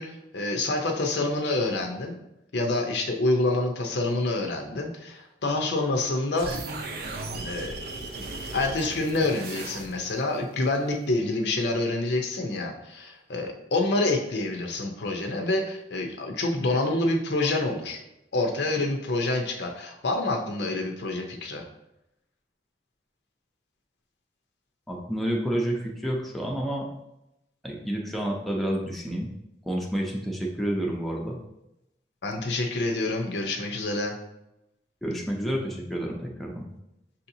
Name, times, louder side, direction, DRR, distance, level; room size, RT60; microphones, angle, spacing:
voice 1, 0.0-2.2 2.5-6.5 7.4-7.8 8.5-18.0 18.3-21.6 32.2-34.2, left 2 dB, 70° left, 3 dB, 0.6 m, -27 dB
sound 1, 6.4-10.2, right 2 dB, 60° right, 0.5 m, -36 dB
voice 2, 24.9-26.9 27.6-29.3 29.7-31.4 35.0-36.7, right 1 dB, ahead, -2 dB, 0.5 m, -29 dB
6.2 x 2.8 x 2.7 m, 0.87 s
head